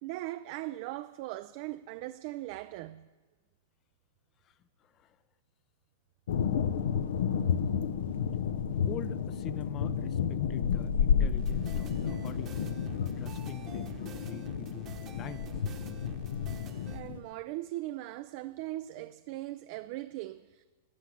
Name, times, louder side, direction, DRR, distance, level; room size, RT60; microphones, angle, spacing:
voice 1, 0.0-3.1 16.9-20.6, right 16 dB, 50° right, 0.4 m, -39 dB
voice 2, 4.8-5.2 8.9-12.6 13.2-15.5, left 9 dB, 30° left, 0.6 m, -44 dB
sound 1, 6.3-17.2, left 7 dB, 80° left, 0.7 m, -31 dB
sound 2, 11.4-17.0, right 7 dB, 30° right, 1.1 m, -49 dB
14.0 x 6.1 x 8.3 m
hypercardioid pair, 135°, 0 cm